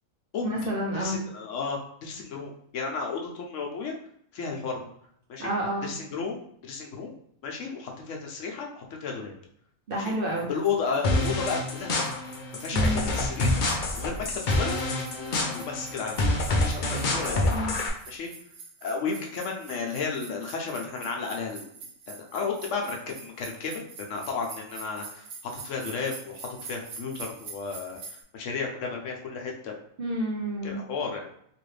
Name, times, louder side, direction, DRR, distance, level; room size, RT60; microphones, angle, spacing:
voice 1, 0.4-1.2 5.4-5.9 9.9-10.5 12.7-13.1 17.5-17.7 30.0-30.9, right 1 dB, 50° right, -2 dB, 0.7 m, -29 dB
voice 2, 0.9-3.9 4.3-4.8 5.3-5.5 5.8-7.1 7.4-9.3 9.9-10.1 10.5-12.1 12.5-13.6 14.0-14.8 15.1-16.3 16.6-17.5 18.1-18.3 18.8-21.7 22.1-29.8 30.6-31.3, left 5 dB, 70° left, 1 dB, 1.0 m, -33 dB
sound 1, 10.0-28.2, right 5 dB, 85° right, 1.0 m, -46 dB
sound 2, 11.0-17.9, left 2 dB, 55° left, 0.5 m, -27 dB
3.0 x 2.5 x 3.1 m, 0.69 s
omnidirectional pair, 1.4 m